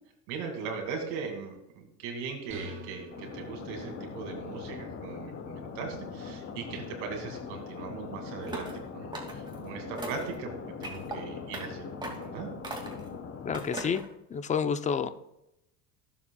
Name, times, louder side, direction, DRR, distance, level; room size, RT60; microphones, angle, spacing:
voice 1, 0.3-10.5 10.8-12.5, right 5 dB, 85° right, 4 dB, 2.4 m, -39 dB
sound 1, 2.5-4.1, right 1 dB, 35° right, 2.2 m, -46 dB
sound 2, 3.1-13.6, left 5 dB, 35° left, 1.1 m, -41 dB
sound 3, 8.4-8.8 9.1-9.6 10.0-10.3 10.8-11.2 11.5-11.7 12.0-12.3 12.6-13.1 13.5-14.1, right 1 dB, 10° right, 2.3 m, -38 dB
voice 2, 13.4-14.0 14.3-15.1, left 6 dB, 20° left, 11 dB, 0.5 m, -29 dB
16.0 x 7.2 x 2.3 m, 0.86 s
supercardioid pair, 115°, 35 cm